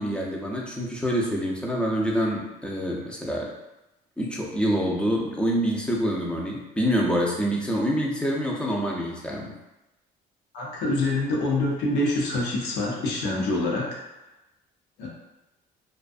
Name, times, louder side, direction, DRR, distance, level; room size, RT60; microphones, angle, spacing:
voice 1, 0.0-3.5 4.2-9.5, equal, 5° left, -3 dB, 0.5 m, -26 dB
voice 2, 10.5-14.0 15.0-15.1, left 2 dB, 80° left, -3 dB, 0.7 m, -26 dB
2.4 x 2.3 x 2.4 m, 0.98 s
cardioid pair, 110°, 17 cm